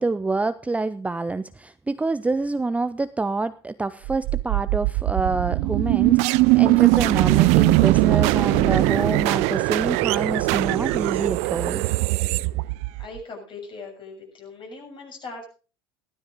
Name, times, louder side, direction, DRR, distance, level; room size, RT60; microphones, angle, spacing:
voice 1, 0.0-11.8, right 3 dB, 10° right, 14 dB, 0.5 m, -27 dB
sound 1, 4.1-13.2, right 21 dB, 60° right, 0.5 m, -20 dB
voice 2, 13.0-15.5, left 3 dB, 40° left, 2 dB, 6.7 m, -39 dB
15.5 x 13.0 x 3.8 m, 0.35 s
hypercardioid pair, 75°, 13 cm